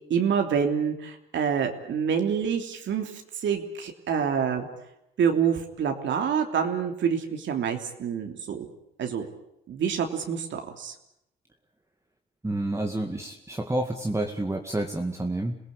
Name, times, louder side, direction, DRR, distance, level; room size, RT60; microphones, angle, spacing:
voice 1, 0.1-4.7 5.2-8.7 9.0-9.3 9.7-10.9, right 7 dB, 70° right, 4 dB, 3.0 m, -27 dB
voice 2, 12.4-15.6, right 1 dB, 15° right, 2 dB, 2.2 m, -29 dB
27.0 x 18.0 x 8.4 m, 0.82 s
cardioid pair, 90°, 20 cm